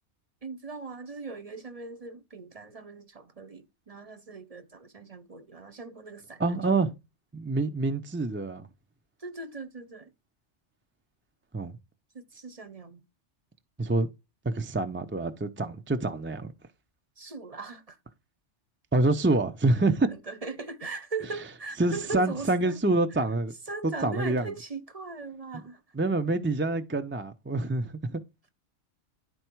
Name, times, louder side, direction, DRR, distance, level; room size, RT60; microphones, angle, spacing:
voice 1, 0.4-6.6 9.2-10.1 12.1-13.0 17.2-18.0 20.1-22.8 23.7-25.8, right 3 dB, 35° right, 0.9 m, -39 dB
voice 2, 6.4-6.9 7.3-8.7 11.5-11.8 13.8-14.1 14.4-16.5 18.9-20.1 21.8-23.5 23.8-24.5 25.5-25.6 25.9-28.2, right 2 dB, 15° right, 0.5 m, -26 dB
11.0 x 4.5 x 4.5 m
omnidirectional pair, 1.2 m